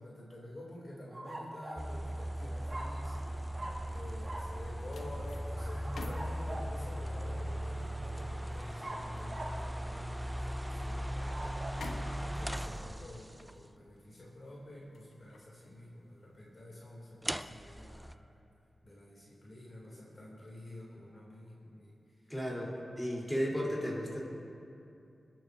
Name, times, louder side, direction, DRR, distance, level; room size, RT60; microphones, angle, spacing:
voice 1, 0.0-18.2 18.8-22.0, left 1 dB, 45° left, -5 dB, 2.8 m, -49 dB
sound 1, 1.1-1.9 2.7-3.3 3.5-3.9 4.2-4.5 5.5-6.8 8.8-9.6 11.1-11.8, right 1 dB, 40° right, 1.8 m, -43 dB
sound 2, 1.8-13.5 17.2-18.1, equal, 10° right, 0.4 m, -38 dB
sound 3, 3.4-16.7 17.1-17.4, left 3 dB, 85° left, 0.9 m, -52 dB
voice 2, 22.3-24.3, equal, 10° left, -4 dB, 3.5 m, -34 dB
26.5 x 9.1 x 2.7 m, 2.6 s
cardioid pair, 50°, 0 cm